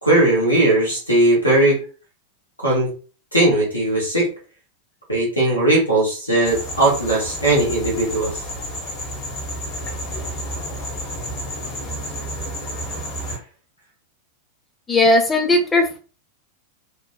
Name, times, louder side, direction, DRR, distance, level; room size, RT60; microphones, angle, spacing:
voice 1, 0.0-1.8 2.6-2.9 3.3-4.3 5.1-8.3 13.3-13.4, right 1 dB, 80° left, -2 dB, 0.9 m, -18 dB
sound 1, 6.4-13.4, equal, 30° left, 0.9 m, -30 dB
voice 2, 14.9-16.0, left 2 dB, 15° left, 3 dB, 0.6 m, -17 dB
2.8 x 2.1 x 2.4 m, 0.37 s
figure-of-eight pair, 90°, 0 cm